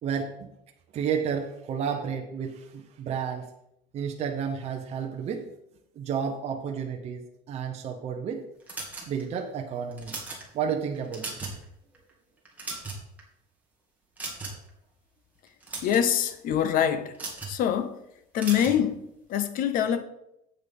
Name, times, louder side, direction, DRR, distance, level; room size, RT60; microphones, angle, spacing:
voice 1, 0.0-0.5 0.9-3.4 3.9-5.5 5.9-7.2 7.5-8.4 9.1-10.1 10.5-11.5, right 7 dB, 35° right, 0.9 m, -31 dB
sound 1, 8.7-9.4 9.9-10.4 10.9-11.6 11.9-12.1 12.5-13.2 14.2-14.7 15.5-16.0 17.1-17.6 18.4-18.8, right 3 dB, 10° right, 2.0 m, -37 dB
voice 2, 15.8-17.1 17.5-18.0 18.3-20.0, left 9 dB, 45° left, 0.8 m, -25 dB
8.1 x 6.1 x 5.3 m
cardioid pair, 160°, 19 cm